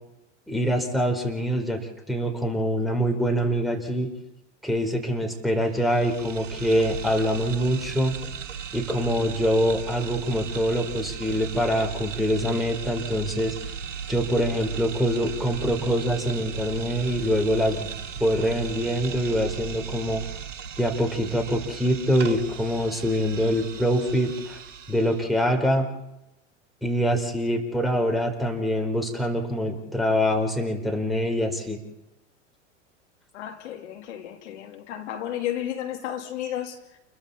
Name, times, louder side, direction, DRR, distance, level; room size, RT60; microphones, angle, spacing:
voice 1, 0.5-1.8 2.1-4.1 4.6-8.1 8.7-13.5 14.1-17.9 18.2-20.2 20.8-24.6 24.9-25.9 26.8-31.8, equal, ahead, 4.5 m, -24 dB
sound 1, 5.6-25.3, right 7 dB, 75° right, 1.7 m, -37 dB
voice 2, 33.3-37.0, left 11 dB, 65° left, 3.1 m, -33 dB
29.5 x 22.0 x 4.3 m
hypercardioid pair, 90°, 37 cm